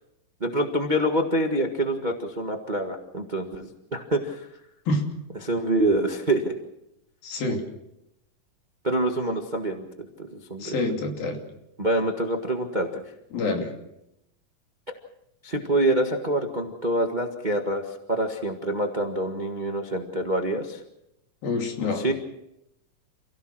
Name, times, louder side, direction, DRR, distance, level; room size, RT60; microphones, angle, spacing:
voice 1, 0.4-4.5 5.4-6.4 8.8-10.8 11.8-13.0 15.4-20.8 21.9-22.1, right 1 dB, 60° right, 3 dB, 0.4 m, -26 dB
voice 2, 7.2-7.6 10.6-11.4 13.3-13.7 21.4-22.1, left 2 dB, 80° left, 2 dB, 4.7 m, -27 dB
28.0 x 17.0 x 6.2 m, 0.83 s
omnidirectional pair, 4.1 m